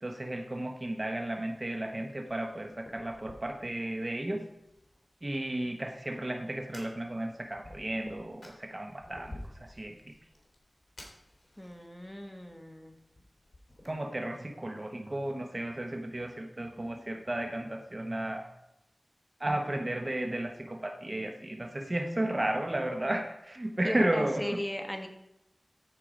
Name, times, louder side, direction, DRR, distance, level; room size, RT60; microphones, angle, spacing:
voice 1, 0.0-4.4 5.2-10.1 13.8-18.5 19.4-24.6, right 1 dB, 40° right, 5 dB, 1.0 m, -33 dB
Fire, 2.1-13.9, left 1 dB, 50° left, 3.0 m, -53 dB
voice 2, 11.6-12.9 23.8-25.1, left 1 dB, 5° left, 4 dB, 1.5 m, -36 dB
13.5 x 4.7 x 5.0 m, 0.88 s
wide cardioid pair, 50°, 0 cm